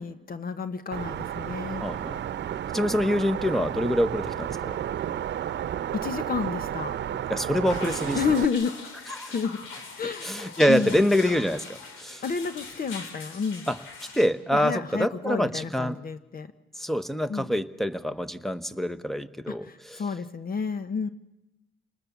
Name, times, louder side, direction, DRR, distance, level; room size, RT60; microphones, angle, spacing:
voice 1, 0.0-1.8 5.9-6.9 8.1-8.7 9.3-9.6 10.0-10.4 10.7-11.0 12.2-13.6 14.5-16.5 17.3-17.5 19.6-21.1, left 6 dB, 45° left, 11 dB, 1.2 m, -30 dB
sound 1, 0.9-8.5, right 10 dB, 60° right, 0.9 m, -32 dB
voice 2, 1.8-2.2 2.7-4.8 7.3-8.2 9.1-9.3 10.2-12.2 13.7-13.8 14.1-16.0 16.8-20.0, equal, ahead, 13 dB, 1.2 m, -26 dB
sound 2, 7.7-14.3, left 4 dB, 90° left, 3.7 m, -41 dB
28.5 x 20.0 x 7.4 m, 0.94 s
cardioid pair, 90°, 20 cm